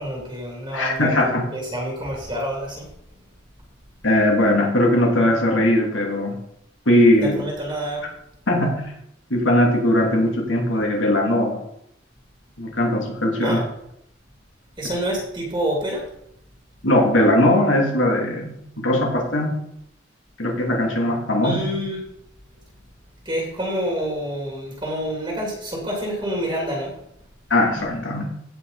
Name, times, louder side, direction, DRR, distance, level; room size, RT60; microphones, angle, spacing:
voice 1, 0.0-2.9 7.2-8.1 13.4-13.6 14.8-16.0 21.4-22.0 23.2-26.9, equal, 25° right, -2 dB, 2.6 m, -27 dB
voice 2, 0.7-1.4 4.0-6.4 6.8-7.4 8.5-8.9 9.3-11.6 12.6-13.6 16.8-19.5 20.4-21.7 27.5-28.2, left 1 dB, 80° left, -1 dB, 2.9 m, -19 dB
16.5 x 5.5 x 4.1 m, 0.75 s
head